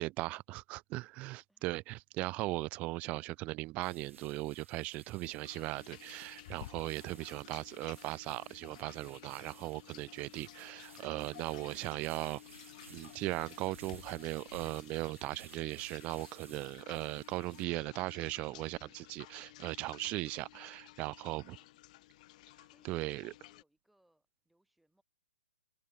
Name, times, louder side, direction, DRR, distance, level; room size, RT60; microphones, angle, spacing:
voice 1, 0.0-12.4 12.9-21.5 22.8-23.3, right 20 dB, 20° right, 0.5 m, -38 dB
sound 1, 3.8-17.6, right 6 dB, 80° right, 2.0 m, -58 dB
sound 2, 5.4-23.6, left 17 dB, 35° left, 1.7 m, -54 dB
voice 2, 20.8-22.0 22.5-25.0, right 1 dB, ahead, 6.8 m, -74 dB
hypercardioid pair, 155°, 7 cm